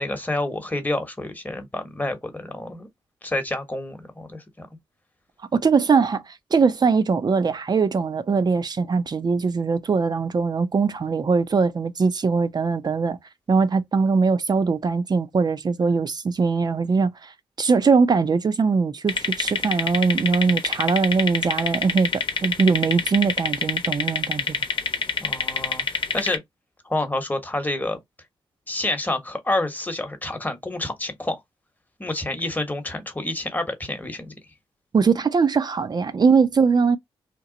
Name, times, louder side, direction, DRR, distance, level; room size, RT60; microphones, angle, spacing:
voice 1, 0.0-2.9 3.2-4.7 25.2-26.4 26.8-28.0 28.7-31.4 32.0-34.3, left 2 dB, 15° left, 1.0 m, -28 dB
voice 2, 5.5-13.2 13.5-17.3 17.6-24.6 34.9-37.0, right 5 dB, 45° right, 0.6 m, -21 dB
sound 1, 19.1-26.4, left 5 dB, 55° left, 0.9 m, -26 dB
3.0 x 2.2 x 3.7 m
cardioid pair, 70°, 10 cm